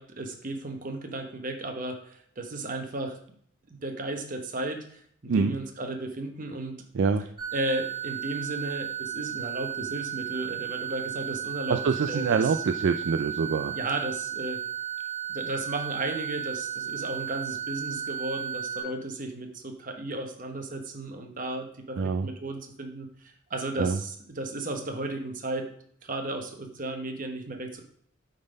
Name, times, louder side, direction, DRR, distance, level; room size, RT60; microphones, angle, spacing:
voice 1, 0.0-3.2 3.8-6.8 7.5-12.6 13.7-14.6 15.3-25.7 26.0-27.8, right 2 dB, 40° right, 4 dB, 1.1 m, -34 dB
sound 1, 7.4-18.8, right 9 dB, 20° right, 3.0 m, -34 dB
voice 2, 11.7-13.7 22.0-22.3 23.8-24.0, right 5 dB, 60° right, 9 dB, 0.4 m, -25 dB
8.7 x 4.0 x 5.2 m, 0.63 s
head